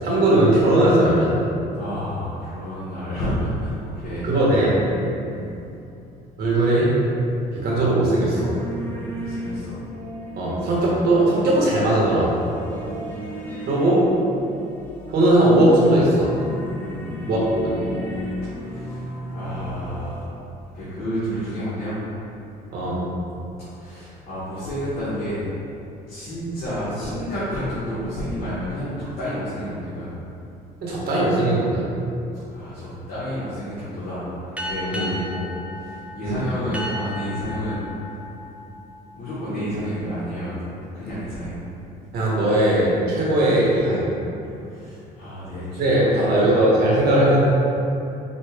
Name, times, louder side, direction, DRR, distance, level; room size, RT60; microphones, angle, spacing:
voice 1, 0.0-1.4 4.2-4.8 6.4-7.0 7.5-8.5 10.4-12.3 13.7-14.0 15.1-16.3 17.2-17.8 22.7-23.0 30.8-31.9 34.9-35.1 36.2-36.4 42.1-44.1 45.8-47.4, right 1 dB, 70° right, -5 dB, 1.2 m, -19 dB
voice 2, 1.7-4.2 5.3-5.5 8.9-9.8 12.8-13.0 16.8-17.5 18.6-20.4 20.7-22.0 23.7-25.4 26.1-30.1 32.5-34.3 34.5-35.4 35.7-37.9 39.1-40.6 40.9-41.6 44.7-46.6, equal, 65° left, -12 dB, 1.4 m, -30 dB
sound 1, 8.3-20.3, equal, 10° left, 0.8 m, -34 dB
sound 2, 34.6-39.6, left 1 dB, 5° right, 0.4 m, -35 dB
5.2 x 2.4 x 3.4 m, 2.7 s
cardioid pair, 110°, 17 cm